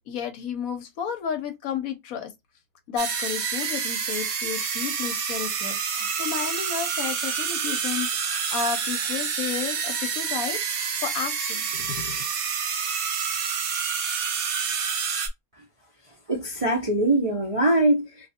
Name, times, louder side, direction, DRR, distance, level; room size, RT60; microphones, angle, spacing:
voice 1, 0.0-2.3 2.9-12.2, left 7 dB, 70° left, 1.0 m, -32 dB
sound 1, 3.0-15.3, right 6 dB, 70° right, 1.2 m, -28 dB
voice 2, 16.3-18.3, right 1 dB, 40° right, 0.5 m, -22 dB
3.3 x 2.6 x 2.7 m
omnidirectional pair, 1.6 m